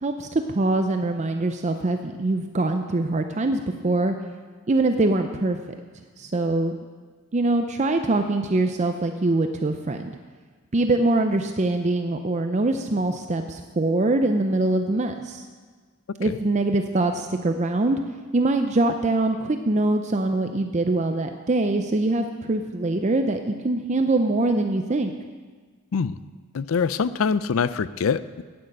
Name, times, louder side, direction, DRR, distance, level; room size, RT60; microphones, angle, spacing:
voice 1, 0.0-4.1 4.7-5.6 6.2-6.8 7.3-10.1 10.7-15.4 16.2-18.0 18.3-25.1, right 2 dB, 30° right, 6 dB, 0.5 m, -23 dB
voice 2, 26.5-28.4, left 6 dB, 65° left, 15 dB, 0.4 m, -24 dB
9.3 x 9.0 x 7.6 m, 1.5 s
head